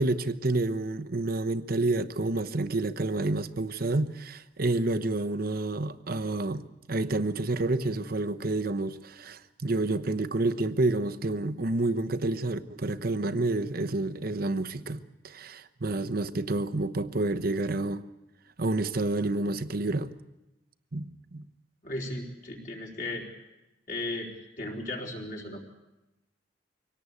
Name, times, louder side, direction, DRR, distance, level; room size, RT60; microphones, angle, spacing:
voice 1, 0.0-6.6 6.9-18.0 18.6-20.1 20.9-21.5, right 2 dB, 55° right, 1.0 m, -29 dB
voice 2, 21.8-23.3 23.9-25.7, left 2 dB, 50° left, 4.1 m, -36 dB
24.0 x 18.0 x 8.4 m
head